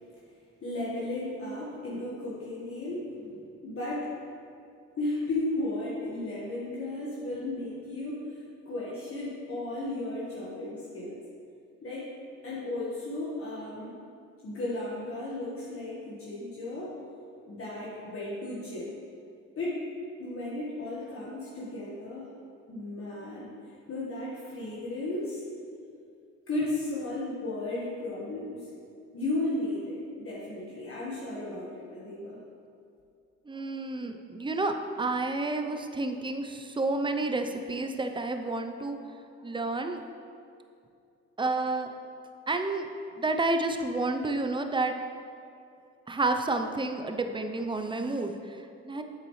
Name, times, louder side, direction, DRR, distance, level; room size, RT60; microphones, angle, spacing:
voice 1, 0.6-4.1 5.0-8.4 8.6-11.2 11.8-12.1 12.4-14.0 14.4-16.9 17.5-18.9 19.6-19.8 20.2-22.3 22.7-23.5 23.9-25.4 26.5-28.7 29.1-32.4, left 2 dB, 45° left, -7 dB, 1.5 m, -34 dB
voice 2, 33.5-39.0 39.4-40.0 41.4-41.9 42.5-42.9 43.2-44.9 46.1-48.3 48.8-49.0, right 2 dB, 15° right, 6 dB, 0.6 m, -30 dB
8.3 x 7.4 x 3.2 m, 2.5 s
cardioid pair, 90°, 30 cm